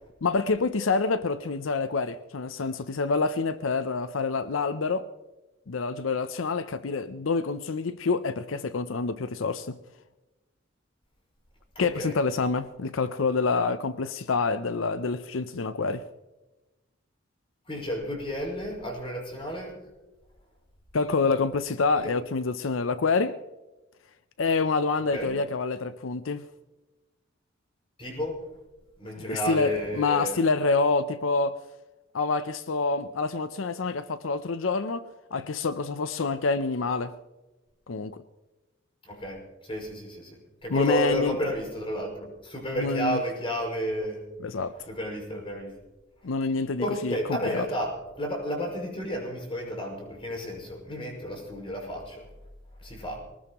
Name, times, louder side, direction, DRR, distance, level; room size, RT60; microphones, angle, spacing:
voice 1, 0.2-5.1 5.7-9.8 11.8-16.0 20.9-23.4 24.4-26.5 29.2-31.6 32.1-35.1 35.3-37.1 37.9-38.2 40.7-41.4 42.8-43.2 44.4-44.7 46.2-47.2 47.5-47.7, left 4 dB, 85° left, 0.6 m, -27 dB
voice 2, 11.7-12.2 17.7-19.8 22.0-22.1 25.1-25.4 28.0-28.4 29.0-30.4 39.0-44.2 44.9-45.7 46.8-52.3 52.8-53.2, equal, 30° left, 5.9 m, -32 dB
23.5 x 19.5 x 3.0 m
head